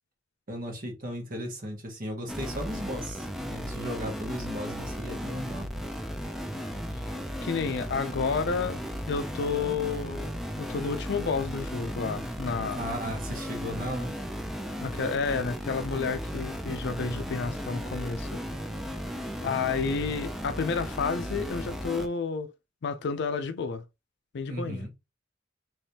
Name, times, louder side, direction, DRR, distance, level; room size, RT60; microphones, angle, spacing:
voice 1, 0.5-5.7 12.7-14.2 24.5-24.9, equal, 45° right, 1.4 m, -36 dB
sound 1, 2.3-22.1, equal, ahead, 0.4 m, -35 dB
voice 2, 7.4-8.8 9.1-12.8 14.8-18.4 19.4-22.5 22.8-23.8 24.3-24.8, left 5 dB, 60° left, 0.4 m, -30 dB
3.3 x 3.0 x 2.8 m
head